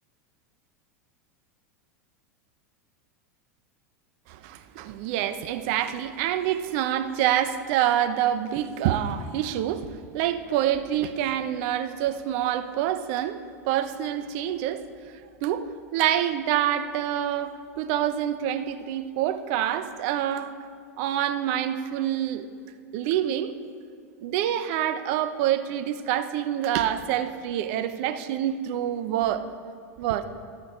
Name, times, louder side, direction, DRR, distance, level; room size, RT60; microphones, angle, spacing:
voice 1, 4.3-9.9 10.1-14.8 15.4-20.5 21.0-22.5 22.9-23.5 24.2-29.5 30.0-30.2, right 11 dB, 55° right, 11 dB, 0.8 m, -26 dB
13.0 x 11.5 x 5.1 m, 2.2 s
hypercardioid pair, 85°, 8 cm